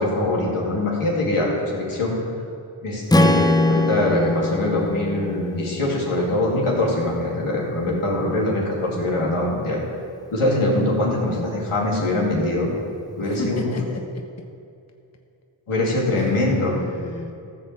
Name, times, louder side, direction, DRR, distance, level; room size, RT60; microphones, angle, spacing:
voice 1, 0.0-2.2 2.8-9.8 10.3-12.7 13.2-13.8 15.7-16.7, left 1 dB, 85° left, -3 dB, 2.5 m, -23 dB
Strum, 3.1-7.4, left 2 dB, 10° left, 0.4 m, -23 dB
voice 2, 13.2-14.3 16.2-17.3, left 3 dB, 30° left, 3 dB, 1.0 m, -33 dB
14.0 x 4.8 x 7.3 m, 2.5 s
wide cardioid pair, 60°, 49 cm